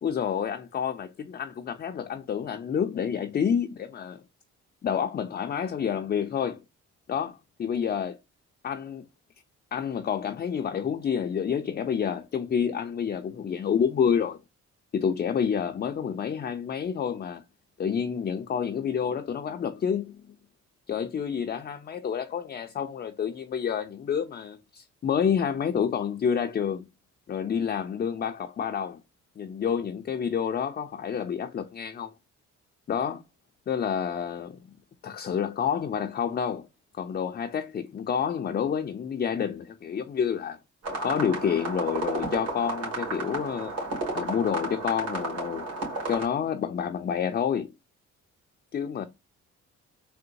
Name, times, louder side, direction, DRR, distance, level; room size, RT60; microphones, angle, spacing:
voice 1, 0.0-4.2 4.8-6.6 7.1-8.2 8.6-9.1 9.7-14.4 14.9-17.4 17.8-20.4 20.9-26.9 27.3-29.0 29.4-32.1 32.9-33.2 33.7-34.6 35.0-36.7 37.0-40.6 41.0-43.7 44.1-45.7 46.1-47.7 48.7-49.0, left 7 dB, 30° left, 0.4 m, -29 dB
sound 1, 40.8-46.2, right 2 dB, 55° right, 2.2 m, -32 dB
3.8 x 2.1 x 2.6 m
cardioid pair, 90°, 30 cm